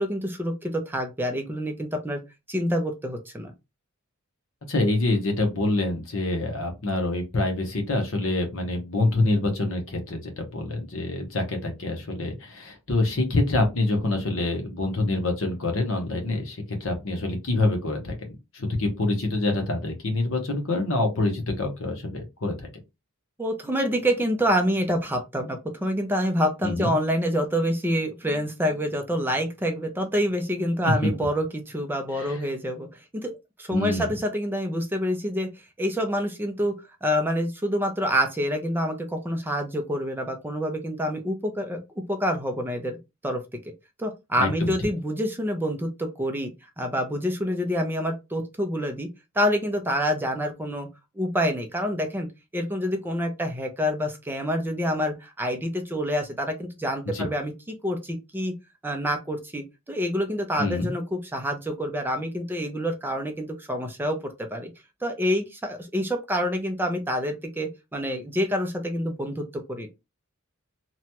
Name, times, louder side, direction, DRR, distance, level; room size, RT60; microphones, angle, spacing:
voice 1, 0.0-2.2 2.5-3.5 23.4-36.7 37.0-41.8 42.1-43.0 43.2-43.4 44.0-49.1 49.3-50.9 51.2-52.3 52.5-58.5 58.8-64.7 65.0-69.9, equal, 10° right, 0.4 m, -27 dB
voice 2, 4.7-22.7 26.6-26.9 30.8-31.1 32.1-32.4 33.7-34.1 44.4-44.9 57.1-57.3 60.6-60.9, left 2 dB, 65° left, 0.9 m, -26 dB
2.9 x 2.2 x 2.8 m
head